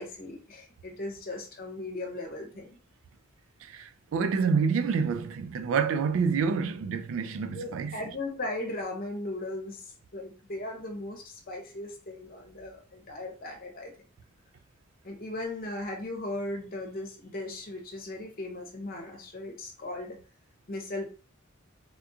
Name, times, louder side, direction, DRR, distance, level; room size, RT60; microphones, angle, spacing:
voice 1, 0.0-2.8 7.5-13.9 15.0-20.2 20.7-21.1, left 2 dB, 45° left, 0.8 m, -37 dB
voice 2, 3.6-8.0, right 5 dB, 75° right, 0.3 m, -28 dB
3.6 x 2.4 x 2.7 m
head